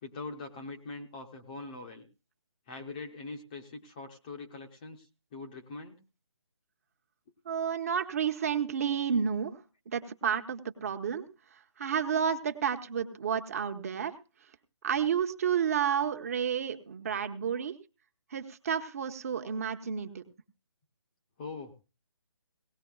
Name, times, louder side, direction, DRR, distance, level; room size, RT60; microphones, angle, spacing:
voice 1, 0.0-2.1 2.7-5.1 5.3-6.0 20.0-20.1 21.4-21.8, left 3 dB, 15° left, 3 dB, 0.7 m, -42 dB
voice 2, 7.4-9.6 9.9-11.2 11.5-14.1 14.8-17.7 18.3-20.2, right 7 dB, 30° right, 6 dB, 1.0 m, -31 dB
18.0 x 17.5 x 2.3 m, 0.32 s
hypercardioid pair, 165°, 15 cm